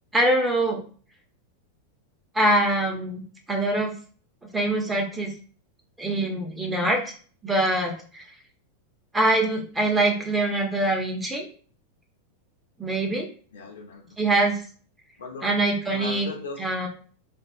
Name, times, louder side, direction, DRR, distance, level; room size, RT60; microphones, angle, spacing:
voice 1, 0.1-0.8 2.3-3.2 3.5-3.9 4.5-5.3 6.0-7.1 7.4-8.2 9.1-11.5 12.8-13.3 14.2-14.6 15.4-16.3 16.6-16.9, right 1 dB, 10° right, 2 dB, 0.7 m, -23 dB
voice 2, 13.5-14.1 15.2-15.5 15.9-16.9, left 4 dB, 65° left, 1 dB, 0.8 m, -38 dB
3.4 x 2.4 x 2.4 m, 0.42 s
figure-of-eight pair, 90°, 0 cm